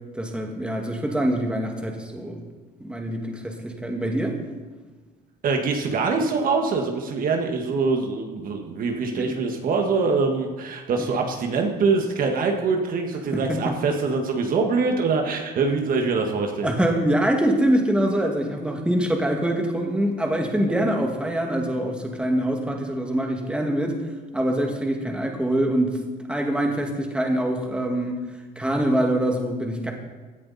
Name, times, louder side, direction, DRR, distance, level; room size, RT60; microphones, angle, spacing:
voice 1, 0.1-2.4 2.8-4.4 9.2-9.3 13.3-13.8 16.6-24.0 24.3-26.0 26.3-28.2 28.6-29.9, right 1 dB, 5° right, 1 dB, 2.2 m, -24 dB
voice 2, 5.4-16.8, right 4 dB, 55° right, 3 dB, 1.8 m, -24 dB
17.0 x 10.5 x 4.3 m, 1.3 s
cardioid pair, 110°, 17 cm